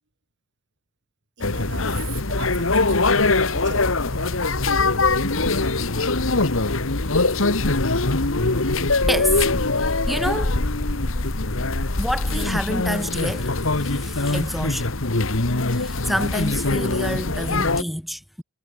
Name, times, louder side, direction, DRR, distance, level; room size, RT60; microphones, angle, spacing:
sound 1, 1.4-17.8, left 3 dB, 65° left, 1.8 m, -22 dB
voice 1, 1.4-4.6, right 5 dB, 55° right, 6.8 m, -40 dB
voice 2, 9.1-9.5 9.8-10.6 12.0-14.9 15.7-18.4, equal, ahead, 2.9 m, -28 dB
head